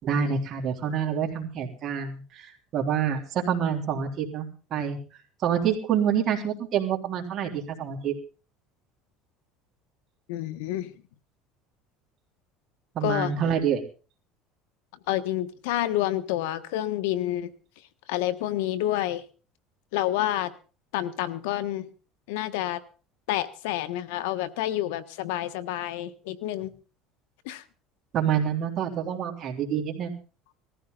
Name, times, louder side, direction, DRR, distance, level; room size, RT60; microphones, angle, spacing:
voice 1, 0.0-2.5 2.7-5.0 5.4-8.1 12.9-13.8 28.1-30.1, right 8 dB, 45° right, 2 dB, 3.5 m, -27 dB
voice 2, 10.3-10.9 13.0-13.3 15.1-17.5 18.1-19.2 19.9-20.5 20.9-21.9 22.3-22.8 23.3-26.7 27.4-27.6, left 13 dB, 85° left, 12 dB, 1.3 m, -28 dB
20.0 x 14.5 x 4.0 m, 0.37 s
cardioid pair, 125°, 0 cm